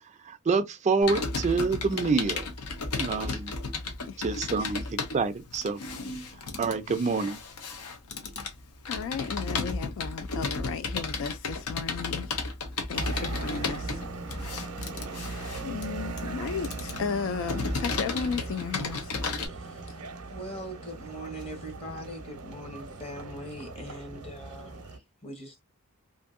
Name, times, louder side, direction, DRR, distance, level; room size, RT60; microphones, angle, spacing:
voice 1, 0.2-2.5 3.0-3.5 4.2-5.8 6.6-7.4, right 4 dB, 30° right, 0.3 m, -27 dB
Computer keyboard, 1.0-19.5, left 3 dB, 80° left, 0.7 m, -34 dB
voice 2, 8.9-12.4 12.9-14.4 15.6-19.1 19.9-20.0, left 6 dB, 60° left, 0.3 m, -35 dB
sound 1, 12.9-25.0, right 3 dB, 75° right, 0.6 m, -39 dB
voice 3, 20.3-25.6, equal, 25° left, 0.9 m, -41 dB
2.7 x 2.6 x 2.4 m
head